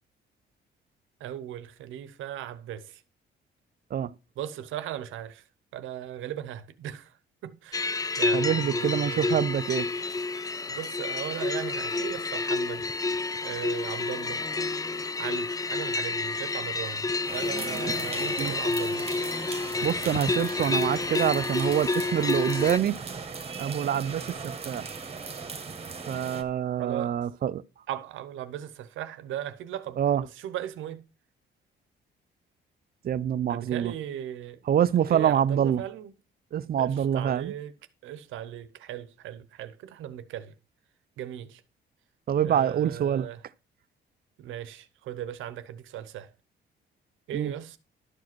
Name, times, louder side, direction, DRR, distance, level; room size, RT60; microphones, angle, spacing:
voice 1, 1.2-3.0 4.4-5.4 5.7-7.2 7.4-9.4 10.7-12.9 13.4-14.4 15.2-19.1 26.8-27.2 27.9-31.1 33.5-34.6 35.1-36.2 36.8-37.7 38.0-40.5 41.2-41.6 42.4-43.4 44.4-46.3 47.3-47.8, right 11 dB, 85° right, 0.9 m, -38 dB
sound 1, 7.7-22.8, left 3 dB, 20° left, 0.4 m, -29 dB
voice 2, 8.3-9.9 18.4-18.5 19.8-23.0 23.6-24.9 26.1-27.6 30.0-30.2 33.0-33.9 34.7-35.8 36.5-37.5 42.3-43.3 47.3-47.5, right 9 dB, 50° right, 0.5 m, -26 dB
sound 2, 17.3-26.4, right 5 dB, 30° right, 1.4 m, -39 dB
11.5 x 4.9 x 6.1 m
cardioid pair, 90°, 20 cm